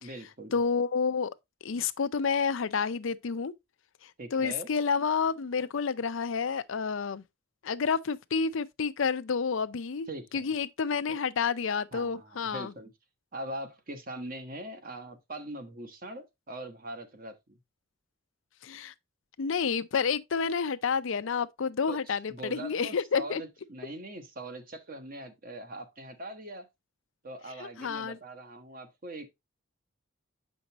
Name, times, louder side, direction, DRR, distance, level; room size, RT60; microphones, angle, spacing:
voice 1, 0.0-0.6 4.2-4.7 10.1-10.5 11.9-12.9 13.3-17.6 21.9-26.7 27.2-29.3, right 1 dB, 40° right, 1.1 m, -42 dB
voice 2, 0.5-1.3 1.6-3.5 4.3-7.2 7.6-10.1 10.3-12.7 18.6-18.9 19.4-23.4 27.6-28.2, left 5 dB, 65° left, 0.5 m, -29 dB
7.0 x 5.3 x 2.9 m
head